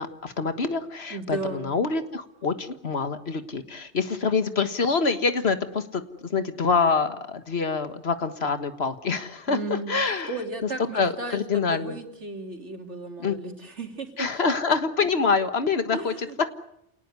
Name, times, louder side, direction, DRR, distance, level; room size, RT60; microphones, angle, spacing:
voice 1, 0.0-10.3 10.9-12.0 13.2-13.3 14.2-16.1 16.4-16.5, left 4 dB, 65° left, 10 dB, 1.8 m, -26 dB
voice 2, 1.1-1.7 9.5-14.3 15.9-16.4, right 2 dB, 85° right, 4 dB, 3.5 m, -35 dB
28.0 x 19.0 x 9.7 m, 0.79 s
omnidirectional pair, 1.2 m